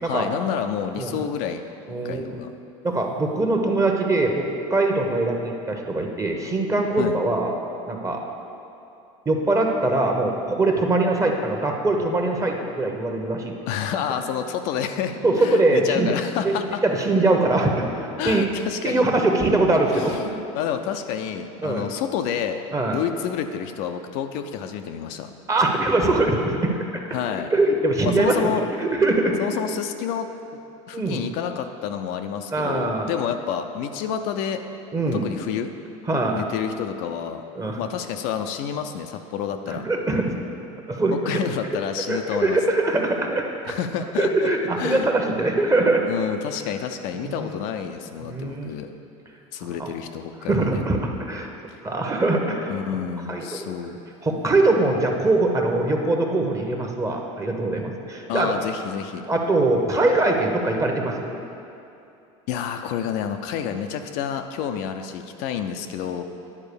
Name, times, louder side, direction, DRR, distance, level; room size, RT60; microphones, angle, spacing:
voice 1, 0.0-1.6 2.0-2.5 7.0-7.1 13.7-16.8 18.2-19.0 19.9-22.6 22.9-25.3 27.1-27.5 28.0-28.6 29.4-30.3 30.9-34.6 35.1-35.7 36.3-37.4 37.8-39.9 41.1-42.6 43.7-44.5 44.8-45.1 46.1-48.9 49.5-50.8 52.7-54.0 58.3-59.3 62.5-66.2, left 8 dB, 65° left, 6 dB, 0.6 m, -29 dB
voice 2, 1.9-2.3 2.8-7.5 7.9-8.2 9.2-13.5 15.2-16.1 16.4-16.5 16.8-18.4 18.8-20.4 21.6-21.8 22.7-23.0 25.5-27.0 27.5-29.5 30.9-31.2 32.5-33.1 34.9-35.3 36.1-36.4 37.5-37.8 39.7-40.2 40.9-41.4 42.1-43.7 44.2-46.0 47.2-47.6 48.2-48.7 49.8-49.9 50.5-51.5 51.8-52.8 53.3-53.7 54.2-58.6 59.3-61.4, right 2 dB, 20° right, 2 dB, 1.1 m, -22 dB
9.7 x 4.4 x 6.9 m, 2.7 s
supercardioid pair, 100°, 16 cm